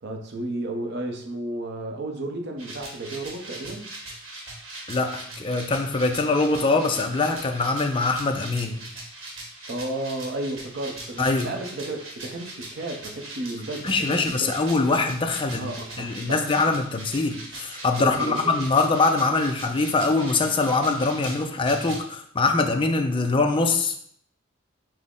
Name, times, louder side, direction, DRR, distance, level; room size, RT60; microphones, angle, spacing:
voice 1, 0.0-3.9 9.7-14.5 15.6-16.4 18.0-18.6, right 2 dB, 55° right, 3 dB, 0.7 m, -33 dB
sound 1, 2.6-22.0, right 2 dB, 85° right, 1.3 m, -40 dB
voice 2, 4.9-8.8 11.2-11.5 13.8-24.0, left 3 dB, 25° left, 5 dB, 0.4 m, -23 dB
6.0 x 2.1 x 3.6 m, 0.65 s
head